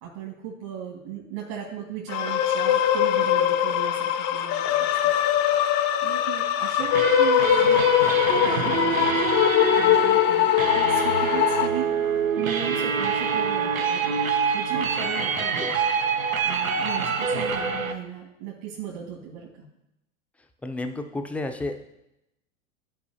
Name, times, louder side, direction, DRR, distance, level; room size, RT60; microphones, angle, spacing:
voice 1, 0.0-4.6 6.0-7.9 8.4-9.2 9.7-11.9 12.4-14.1 14.5-15.7 16.4-19.5, right 9 dB, 55° right, -1 dB, 1.8 m, -37 dB
sound 1, 2.1-11.7, left 11 dB, 40° left, 0.6 m, -22 dB
sound 2, 6.8-17.9, right 5 dB, 85° right, 0.8 m, -25 dB
voice 2, 20.6-21.8, left 2 dB, 5° left, 6 dB, 0.5 m, -31 dB
13.5 x 4.7 x 2.7 m, 0.88 s
figure-of-eight pair, 85°, 39 cm